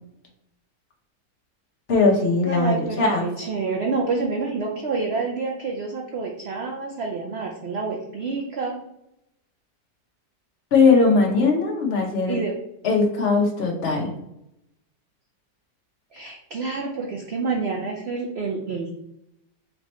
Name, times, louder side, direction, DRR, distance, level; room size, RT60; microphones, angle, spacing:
voice 1, 1.9-3.3 10.7-12.3 12.8-14.1, left 4 dB, 45° left, 1 dB, 1.0 m, -19 dB
voice 2, 2.4-8.8 12.3-12.6 16.1-18.9, right 4 dB, 80° right, 0 dB, 0.5 m, -28 dB
4.3 x 2.8 x 4.2 m, 0.82 s
omnidirectional pair, 1.8 m